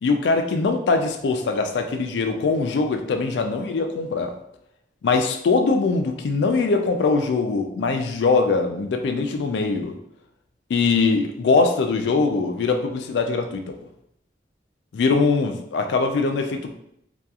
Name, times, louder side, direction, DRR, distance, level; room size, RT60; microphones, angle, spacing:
voice 1, 0.0-4.3 5.0-9.9 10.7-13.6 14.9-16.7, left 4 dB, 75° left, 5 dB, 0.3 m, -22 dB
2.8 x 2.3 x 2.3 m, 0.76 s
head